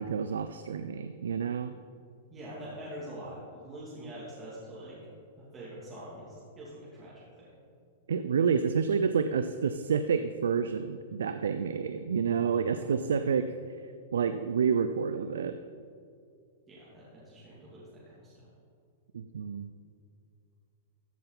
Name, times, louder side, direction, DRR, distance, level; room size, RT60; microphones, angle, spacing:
voice 1, 0.0-1.7 8.1-13.5 14.1-15.6 19.1-19.7, right 6 dB, 80° right, 10 dB, 0.4 m, -29 dB
voice 2, 2.3-5.0 5.4-7.5 12.7-13.3 16.7-18.5, right 1 dB, 20° right, -8 dB, 2.6 m, -45 dB
14.0 x 5.8 x 4.0 m, 2.3 s
hypercardioid pair, 120°, 0 cm